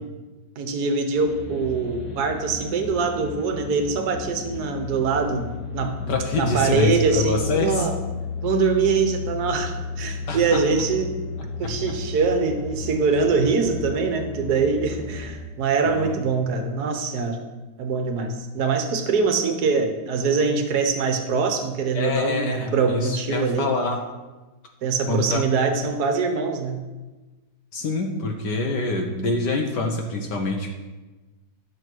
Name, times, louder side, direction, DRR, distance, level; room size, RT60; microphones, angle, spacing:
voice 1, 0.6-7.9 8.4-11.1 11.6-17.4 17.8-23.7 24.8-26.8, right 4 dB, 60° right, 5 dB, 1.5 m, -23 dB
sound 1, 1.2-15.3, left 4 dB, 90° left, 2.2 m, -33 dB
voice 2, 6.1-7.9 10.3-10.6 11.6-11.9 15.8-16.2 21.9-24.0 25.1-25.4 27.7-30.7, left 3 dB, 65° left, 2 dB, 1.6 m, -26 dB
11.0 x 8.0 x 4.6 m, 1.2 s
omnidirectional pair, 2.1 m